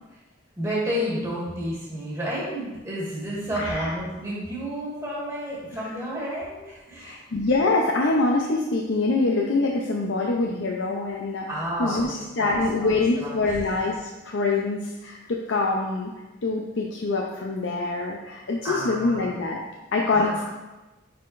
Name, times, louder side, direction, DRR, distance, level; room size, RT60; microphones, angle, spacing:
voice 1, 0.6-7.2 11.5-12.9 13.2-13.8 18.6-19.3 20.1-20.4, equal, 15° right, -8 dB, 1.6 m, -31 dB
voice 2, 3.5-3.9 7.0-11.5 11.8-16.1 16.4-19.6 19.9-20.4, left 3 dB, 85° left, -1 dB, 0.6 m, -25 dB
9.9 x 3.8 x 2.5 m, 1.1 s
head